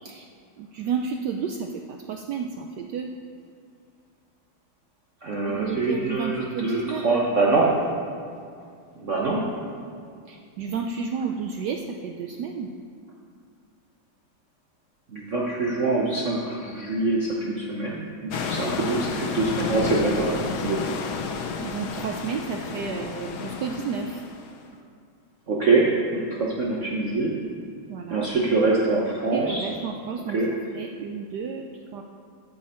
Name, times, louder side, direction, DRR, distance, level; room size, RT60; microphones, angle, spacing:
voice 1, 0.6-3.1 5.4-7.2 10.3-12.7 21.6-24.2 27.9-28.3 29.3-30.4 30.7-31.6 31.9-32.0, right 6 dB, 70° right, 3 dB, 1.0 m, -31 dB
voice 2, 5.2-7.7 9.0-9.4 15.1-20.8 25.5-27.3 28.1-29.6 30.3-30.5, right 3 dB, 50° right, -3 dB, 1.0 m, -24 dB
sound 1, 18.3-24.6, left 5 dB, 65° left, 1.2 m, -31 dB
13.5 x 6.3 x 4.3 m, 2.3 s
omnidirectional pair, 2.2 m